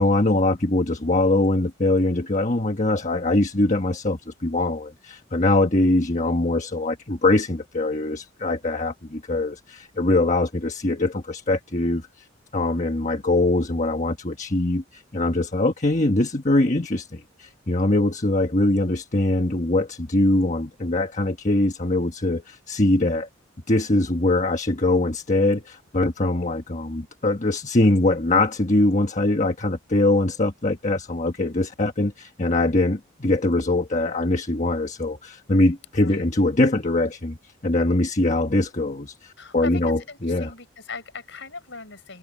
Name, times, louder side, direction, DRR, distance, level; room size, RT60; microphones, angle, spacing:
voice 1, 0.0-12.2 12.5-23.3 23.7-37.4 37.6-40.5, left 2 dB, 35° left, 1.4 m, -22 dB
voice 2, 36.0-36.3 39.4-42.2, left 4 dB, 65° left, 6.6 m, -38 dB
head